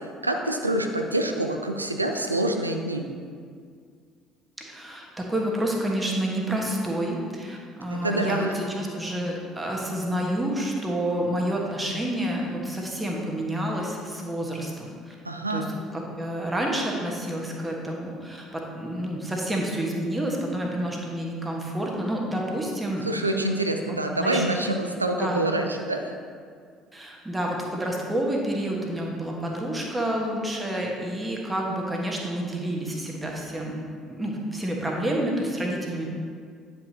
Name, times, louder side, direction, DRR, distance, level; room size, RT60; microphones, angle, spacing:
voice 1, 0.0-3.1 7.9-8.5 15.2-15.7 23.0-26.1, right 1 dB, 85° right, 5 dB, 0.4 m, -26 dB
voice 2, 4.6-15.1 15.5-15.6 15.9-23.0 24.1-24.4 25.2-25.5 26.9-36.1, right 1 dB, 15° right, -1 dB, 1.4 m, -29 dB
9.7 x 5.9 x 2.9 m, 2.1 s
figure-of-eight pair, 55°, 0 cm